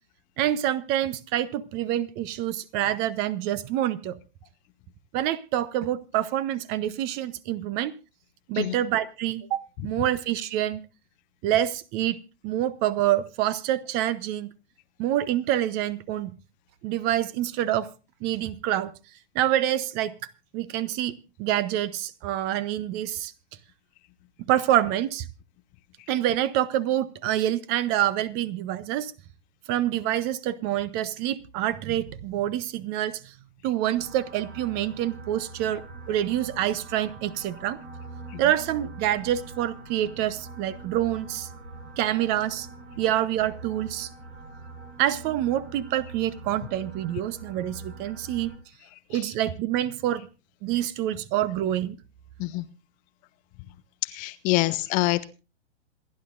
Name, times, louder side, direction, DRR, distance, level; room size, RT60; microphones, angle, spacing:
voice 1, 0.4-4.2 5.1-7.9 8.5-10.8 11.4-12.2 12.4-14.5 15.0-16.3 16.8-17.9 18.2-18.9 19.3-20.1 20.5-21.1 21.4-23.3 24.5-25.3 26.1-29.1 29.7-33.3 33.6-35.8 36.1-37.8 38.4-41.5 42.0-42.7 43.0-44.1 45.0-48.5 49.1-50.3 50.6-52.0, right 12 dB, 30° right, 19 dB, 0.8 m, -26 dB
sound 1, 33.9-48.6, right 3 dB, 70° right, 5.9 m, -43 dB
voice 2, 48.9-49.3 52.4-52.7 54.0-55.2, left 20 dB, 25° left, 13 dB, 0.6 m, -27 dB
27.0 x 11.0 x 2.5 m, 0.31 s
figure-of-eight pair, 110°, 34 cm